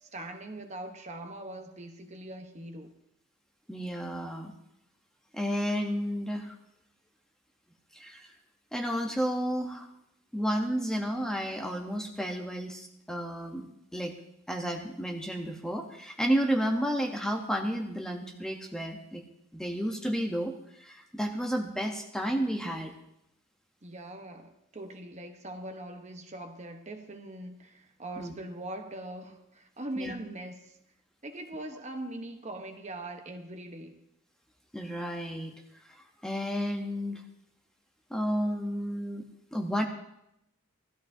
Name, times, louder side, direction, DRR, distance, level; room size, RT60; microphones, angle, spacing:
voice 1, 0.0-2.9 23.8-30.8 31.2-34.0, right 1 dB, 30° right, 1.0 m, -41 dB
voice 2, 3.7-4.5 5.3-6.6 7.9-8.3 8.7-9.9 10.3-13.7 13.9-14.1 14.5-19.2 19.5-22.9 28.2-28.3 30.0-30.1 34.7-35.5 35.9-37.2 38.1-39.2 39.5-39.8, equal, 5° left, 0.8 m, -31 dB
17.5 x 13.0 x 2.7 m
head